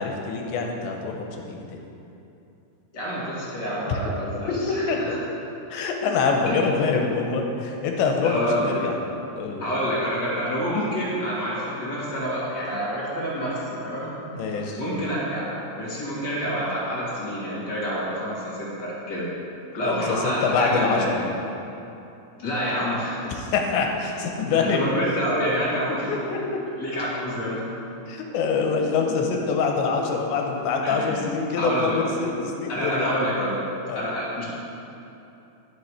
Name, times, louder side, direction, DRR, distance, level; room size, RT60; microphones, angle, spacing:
voice 1, 0.0-1.8 3.9-4.0 4.7-5.2 5.7-8.9 9.4-9.6 14.3-14.8 19.8-21.2 23.2-24.8 26.1-26.4 28.1-33.2 33.9-34.1, left 5 dB, 90° left, 2 dB, 3.2 m, -25 dB
voice 2, 2.9-5.2 6.5-6.6 8.2-8.9 9.6-14.1 14.6-15.5 15.8-19.3 19.8-21.2 22.4-23.2 24.5-26.1 26.8-27.6 30.8-31.2 31.6-32.0 32.7-33.6 33.9-34.4, equal, 35° left, -8 dB, 2.0 m, -27 dB
11.0 x 7.3 x 4.8 m, 2.9 s
omnidirectional pair, 5.1 m